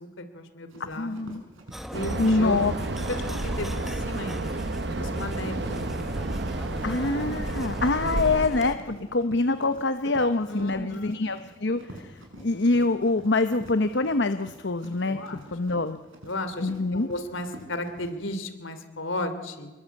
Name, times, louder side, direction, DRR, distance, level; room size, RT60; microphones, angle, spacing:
voice 1, 0.0-1.1 1.9-2.6 3.1-4.5 4.8-6.9 10.5-11.2 15.1-15.5 16.2-19.7, left 1 dB, 75° left, 9 dB, 3.1 m, -35 dB
Run, 0.7-18.1, right 1 dB, 80° right, 6.5 m, -47 dB
voice 2, 0.9-1.4 2.2-2.7 6.8-15.2 15.5-16.0 16.6-17.1, left 3 dB, 60° left, 10 dB, 0.8 m, -25 dB
sound 1, 1.7-8.8, equal, ahead, 1.1 m, -38 dB
sound 2, 1.9-8.5, right 2 dB, 55° right, 0.9 m, -31 dB
26.5 x 22.0 x 8.4 m, 1.2 s
head